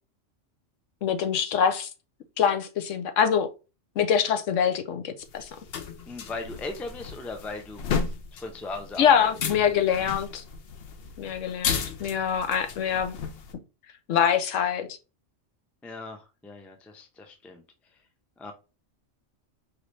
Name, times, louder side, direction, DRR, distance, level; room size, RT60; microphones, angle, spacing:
voice 1, 1.0-1.9 2.4-3.5 4.0-5.5 9.0-10.4 11.2-13.2 14.1-14.9, left 8 dB, 75° left, 1.0 m, -24 dB
sound 1, 5.3-13.5, left 6 dB, 60° left, 0.8 m, -34 dB
voice 2, 6.1-7.9 8.3-9.3 15.8-17.6 18.4-18.5, left 3 dB, ahead, 0.4 m, -38 dB
4.7 x 3.2 x 2.6 m
omnidirectional pair, 1.3 m